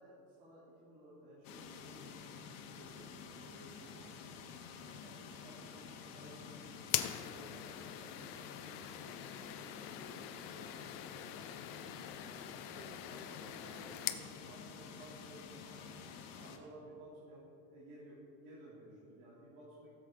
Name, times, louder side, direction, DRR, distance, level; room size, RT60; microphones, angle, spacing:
voice 1, 0.0-4.1 4.8-11.5 11.8-15.9 16.4-17.4 17.7-19.9, right 1 dB, 90° right, -7 dB, 3.1 m, -57 dB
sound 1, 1.4-16.6, left 6 dB, 85° left, 1.4 m, -50 dB
sound 2, 6.8-14.3, left 13 dB, 50° left, 0.6 m, -43 dB
17.0 x 7.6 x 3.8 m, 2.5 s
cardioid pair, 150°, 44 cm